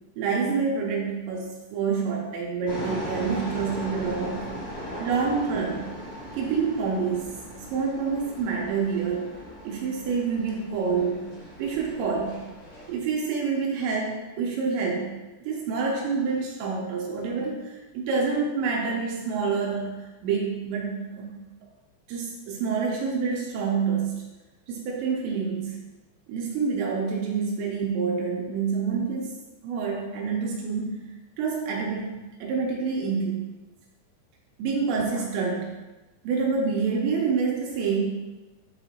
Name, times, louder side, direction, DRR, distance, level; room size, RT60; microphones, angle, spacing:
voice 1, 0.2-4.5 5.0-5.8 6.3-9.4 9.6-11.3 11.6-12.4 12.9-15.2 15.4-21.3 22.1-24.3 24.7-25.8 26.3-29.4 29.6-31.0 31.4-33.3 34.6-35.7 36.2-38.0, right 5 dB, 80° right, -1 dB, 3.0 m, -27 dB
sound 1, 2.7-12.9, equal, 55° left, 1.1 m, -38 dB
9.1 x 4.0 x 4.4 m, 1.1 s
omnidirectional pair, 5.7 m